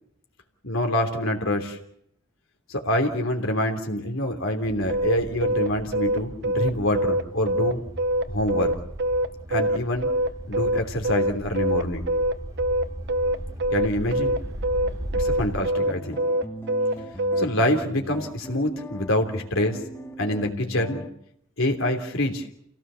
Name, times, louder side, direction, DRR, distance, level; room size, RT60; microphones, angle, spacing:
voice 1, 0.6-1.8 2.7-7.8 8.3-8.8 9.5-10.1 10.5-12.1 13.7-14.4 15.1-16.2 17.4-19.8 20.2-21.0 21.6-22.4, left 1 dB, 70° left, 2 dB, 3.2 m, -26 dB
sound 1, 4.6-15.6, equal, 15° right, 3.6 m, -37 dB
sound 2, 4.9-17.5, right 1 dB, 55° right, 0.8 m, -24 dB
sound 3, 15.8-21.1, left 1 dB, 10° left, 2.0 m, -39 dB
28.0 x 17.0 x 7.0 m, 0.72 s
head